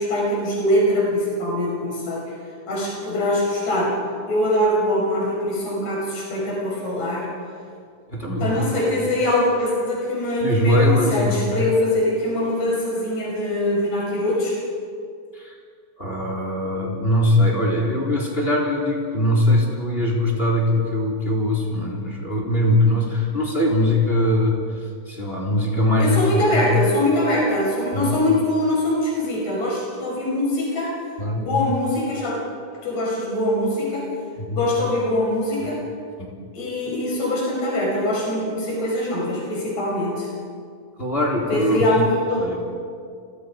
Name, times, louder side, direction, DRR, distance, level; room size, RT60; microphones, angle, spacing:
voice 1, 0.0-2.3 2.7-3.9 4.3-7.3 8.4-14.6 26.0-30.9 31.3-32.3 32.8-34.1 34.5-35.8 36.5-40.3 41.5-42.6, left 1 dB, 55° left, -3 dB, 6.8 m, -23 dB
voice 2, 8.1-8.6 10.4-11.5 15.3-15.6 16.0-26.7 27.9-28.2 31.2-31.5 34.4-34.7 35.6-35.7 36.2-36.3 41.0-41.9 42.4-42.6, left 1 dB, 15° left, -1 dB, 3.8 m, -21 dB
29.5 x 24.5 x 5.2 m, 2.2 s
omnidirectional pair, 3.7 m